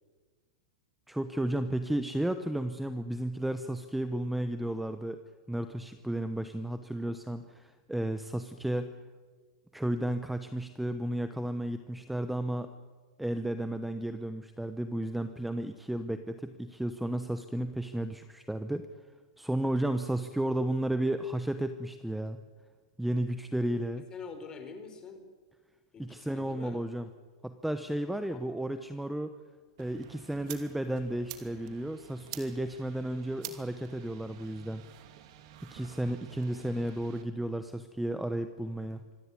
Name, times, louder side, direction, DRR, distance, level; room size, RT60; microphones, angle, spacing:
voice 1, 1.1-5.2 5.5-8.9 9.7-12.7 13.2-18.9 19.4-22.4 23.0-24.0 26.0-27.1 27.4-29.3 29.8-34.8 35.7-39.0, right 1 dB, 5° right, 9 dB, 1.0 m, -33 dB
voice 2, 24.0-25.2 25.9-26.8 28.3-28.4, left 5 dB, 25° left, 7 dB, 4.2 m, -45 dB
sound 1, 29.8-37.2, right 11 dB, 60° right, 2.8 m, -49 dB
26.0 x 15.5 x 9.8 m, 1.5 s
hypercardioid pair, 130°, 3 cm